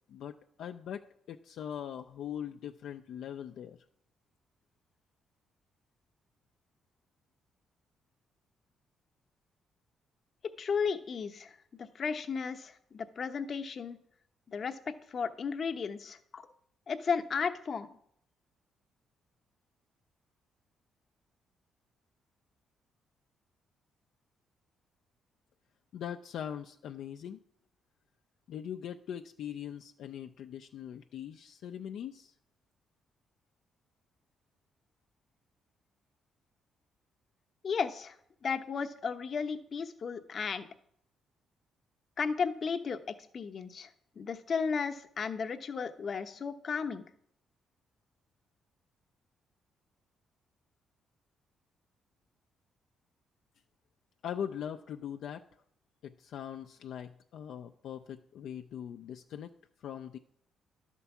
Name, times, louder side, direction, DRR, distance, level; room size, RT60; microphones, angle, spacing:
voice 1, 0.1-3.8 25.9-27.4 28.5-32.3 54.2-55.4 56.0-59.5 59.8-60.2, left 9 dB, 75° left, 6 dB, 0.4 m, -41 dB
voice 2, 10.6-14.0 14.5-16.5 16.9-18.0 37.6-38.1 38.4-40.7 42.2-43.9 44.2-47.0, left 5 dB, 50° left, 6 dB, 0.8 m, -34 dB
11.0 x 4.5 x 7.0 m, 0.69 s
cardioid pair, 90°, 0 cm